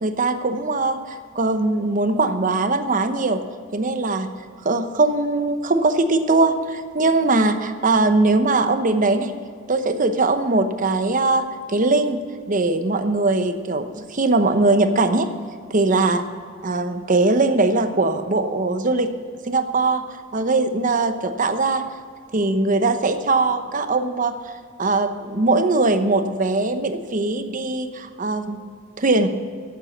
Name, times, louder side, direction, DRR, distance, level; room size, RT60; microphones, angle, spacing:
voice 1, 0.0-3.4 3.7-4.3 4.6-9.3 9.7-15.3 15.7-16.2 16.6-19.2 19.5-21.8 22.3-24.5 24.8-28.6 29.0-29.3, right 3 dB, 40° right, 9 dB, 0.9 m, -21 dB
11.5 x 8.1 x 7.1 m, 2.1 s
head